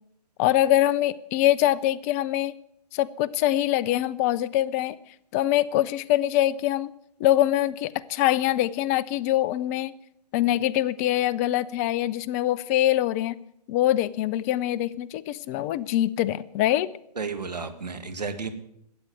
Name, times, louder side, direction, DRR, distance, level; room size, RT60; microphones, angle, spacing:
voice 1, 0.4-2.5 2.9-5.0 5.3-6.9 7.2-9.9 10.3-13.4 13.7-16.9, left 13 dB, 25° left, 16 dB, 0.4 m, -24 dB
voice 2, 17.1-18.5, right 4 dB, 85° right, 9 dB, 1.8 m, -32 dB
13.0 x 8.9 x 9.1 m, 0.74 s
hypercardioid pair, 130°, 21 cm